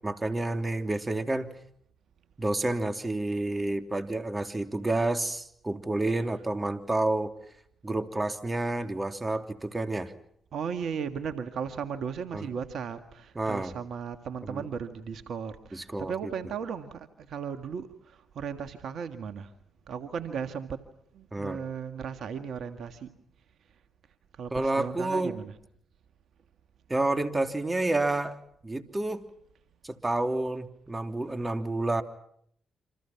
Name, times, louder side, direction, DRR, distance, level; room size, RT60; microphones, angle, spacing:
voice 1, 0.0-1.5 2.4-7.3 7.8-10.1 12.3-12.4 13.3-13.7 14.5-14.7 15.7-16.1 21.3-21.6 24.5-25.4 26.9-28.4 28.6-29.2 29.8-32.0, right 2 dB, 25° right, 7 dB, 3.1 m, -29 dB
voice 2, 10.5-19.5 19.9-20.8 21.1-23.1 24.4-25.5, right 7 dB, 70° right, 9 dB, 1.7 m, -36 dB
29.0 x 26.5 x 5.9 m, 0.68 s
hypercardioid pair, 45°, 0 cm